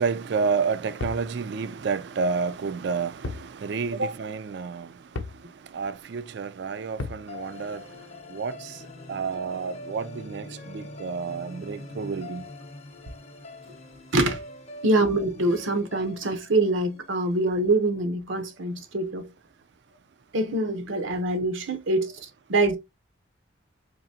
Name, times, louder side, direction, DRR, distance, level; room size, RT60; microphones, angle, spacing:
voice 1, 0.0-4.9 5.7-7.8 8.3-8.7 9.1-12.4, right 5 dB, 60° right, 0.3 m, -30 dB
sound 1, 1.0-1.3 3.2-3.5 3.8-3.9 5.1-5.4 7.0-7.3, left 3 dB, 80° left, 0.6 m, -34 dB
sound 2, 7.3-17.5, left 2 dB, 35° left, 0.6 m, -44 dB
voice 2, 14.8-19.3 20.3-22.8, right 2 dB, 80° right, 0.8 m, -25 dB
3.9 x 3.2 x 2.7 m
head